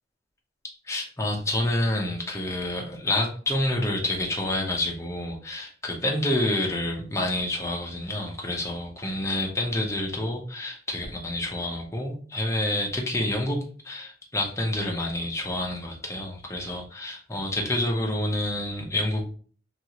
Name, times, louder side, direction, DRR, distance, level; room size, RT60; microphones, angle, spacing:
voice 1, 0.9-13.6 13.8-19.2, left 1 dB, 15° left, 0 dB, 0.6 m, -28 dB
2.8 x 2.4 x 2.9 m, 0.44 s
head